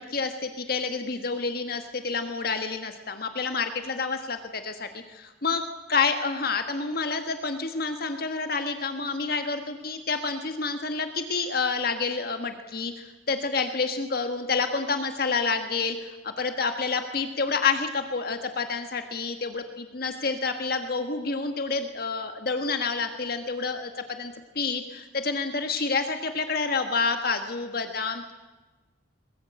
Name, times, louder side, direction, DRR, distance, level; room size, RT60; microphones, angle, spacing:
voice 1, 0.0-5.6 5.9-28.3, left 4 dB, 55° left, 7 dB, 1.6 m, -29 dB
22.0 x 21.0 x 8.8 m, 1.2 s
head